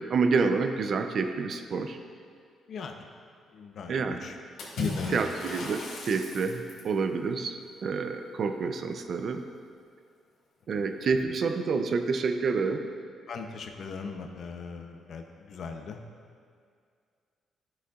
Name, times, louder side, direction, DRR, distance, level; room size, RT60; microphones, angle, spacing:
voice 1, 0.0-2.0 3.9-4.2 5.1-9.4 10.7-12.8, right 4 dB, 55° right, 7 dB, 0.5 m, -28 dB
voice 2, 3.5-3.9 4.2-4.3 4.8-5.2 10.7-10.8 13.3-16.0, left 5 dB, 60° left, 5 dB, 0.7 m, -37 dB
Water / Splash splatter, 4.6-7.0, left 2 dB, 75° left, 1.6 m, -37 dB
11.0 x 6.2 x 2.4 m, 2.2 s
cardioid pair, 90°, 0 cm